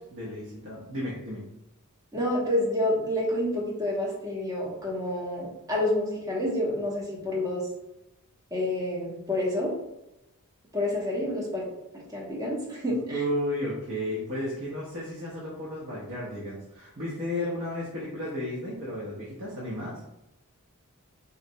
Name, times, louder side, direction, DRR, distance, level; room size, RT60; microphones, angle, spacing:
voice 1, 0.1-1.4 12.9-19.9, left 1 dB, 55° right, -6 dB, 0.7 m, -33 dB
voice 2, 2.1-7.7 8.5-9.7 10.7-11.7 12.1-13.2, left 1 dB, 15° right, -4 dB, 0.7 m, -28 dB
3.9 x 2.1 x 2.6 m, 0.92 s
head